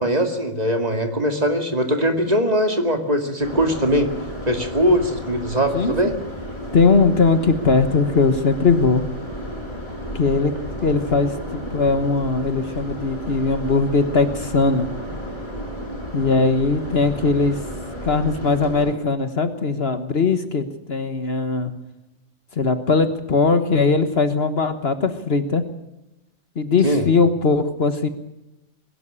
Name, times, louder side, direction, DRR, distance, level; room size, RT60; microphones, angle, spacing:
voice 1, 0.0-4.1 4.5-6.1 26.8-27.1, equal, 30° right, 5 dB, 2.4 m, -21 dB
sound 1, 3.4-18.9, equal, 20° left, 6.2 m, -33 dB
voice 2, 5.7-6.1 6.7-9.0 10.1-10.5 10.8-14.9 16.1-17.6 18.0-21.7 22.6-25.6 26.6-28.1, left 4 dB, 50° left, 9 dB, 1.5 m, -20 dB
22.0 x 12.0 x 9.9 m, 0.94 s
omnidirectional pair, 1.4 m